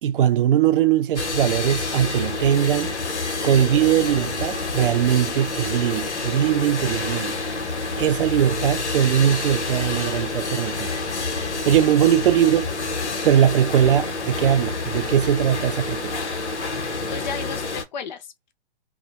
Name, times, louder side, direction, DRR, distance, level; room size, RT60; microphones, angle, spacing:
voice 1, 0.0-3.0 3.4-7.4 8.0-10.9 11.7-12.7 13.2-16.2, right 10 dB, 50° right, 0.5 m, -20 dB
sound 1, 1.2-17.8, left 3 dB, 85° left, 0.9 m, -28 dB
voice 2, 16.8-18.5, left 6 dB, 45° left, 0.5 m, -35 dB
2.2 x 2.0 x 3.1 m
hypercardioid pair, 130°, 33 cm